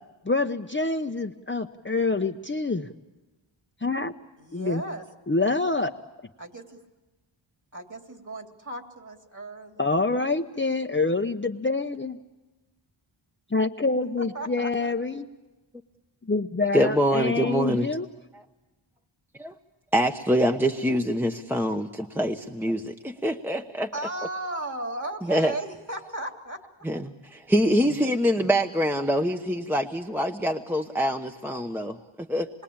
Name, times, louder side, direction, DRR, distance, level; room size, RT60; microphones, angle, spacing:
voice 1, 0.3-2.9 3.8-4.1 4.5-4.8 5.3-5.9 9.8-12.2 13.5-15.2 16.3-18.1, left 3 dB, 25° left, 5 dB, 0.8 m, -26 dB
voice 2, 4.4-5.0 6.4-6.8 7.7-9.9 14.2-14.9 23.9-26.6, right 2 dB, 35° right, 4 dB, 3.1 m, -36 dB
voice 3, 16.6-17.9 18.3-18.4 19.3-19.5 19.9-23.9 25.2-25.5 26.8-27.1 27.5-32.5, equal, 5° right, 4 dB, 1.0 m, -25 dB
26.5 x 21.5 x 8.8 m, 1.1 s
wide cardioid pair, 70°, 49 cm